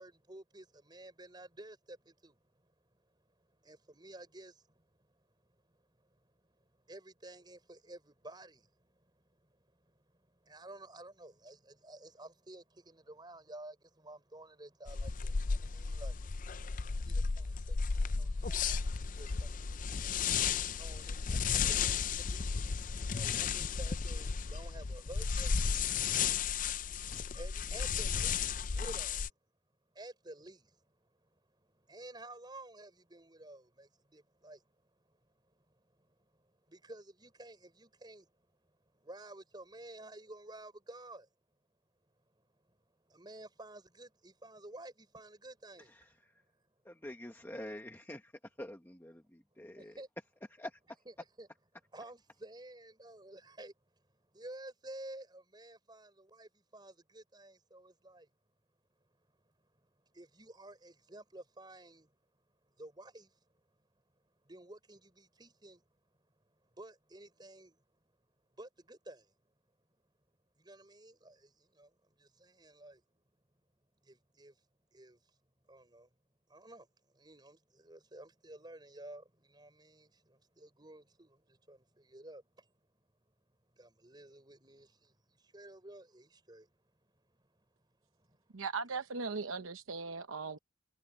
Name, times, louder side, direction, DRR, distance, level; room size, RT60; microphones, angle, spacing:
voice 1, 0.0-29.3 29.9-41.3 42.3-45.9 46.3-46.6 49.8-50.1 51.4-51.5 51.9-58.3 59.4-62.2 62.6-63.5 64.4-65.8 66.5-68.0 68.5-69.3 70.5-73.2 74.0-74.6 74.9-75.2 75.6-76.1 76.5-82.7 83.7-88.6, right 1 dB, 20° right, 4.9 m, -53 dB
sound 1, 14.9-29.3, left 6 dB, 40° left, 0.5 m, -34 dB
voice 2, 45.8-46.4 46.8-50.0 50.5-50.8, left 1 dB, 10° left, 1.2 m, -47 dB
voice 3, 88.5-90.6, right 4 dB, 85° right, 0.9 m, -38 dB
head